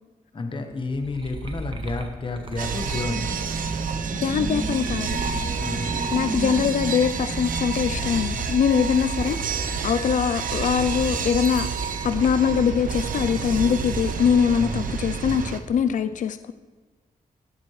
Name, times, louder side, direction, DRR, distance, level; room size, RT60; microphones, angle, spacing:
voice 1, 0.3-3.5 5.6-5.9 14.6-15.0, left 2 dB, 35° left, 5 dB, 1.2 m, -31 dB
sound 1, 0.7-6.9 7.3-14.3 14.7-15.3, right 2 dB, 35° right, 1.1 m, -36 dB
sound 2, 2.6-8.9, right 2 dB, 15° right, 0.3 m, -34 dB
sound 3, 2.6-15.6, right 6 dB, 65° right, 0.8 m, -30 dB
voice 2, 4.2-5.6 6.1-9.4 9.8-11.8 12.0-16.5, left 7 dB, 60° left, 11 dB, 0.5 m, -23 dB
22.5 x 7.8 x 3.2 m, 1.3 s
wide cardioid pair, 110°, 15 cm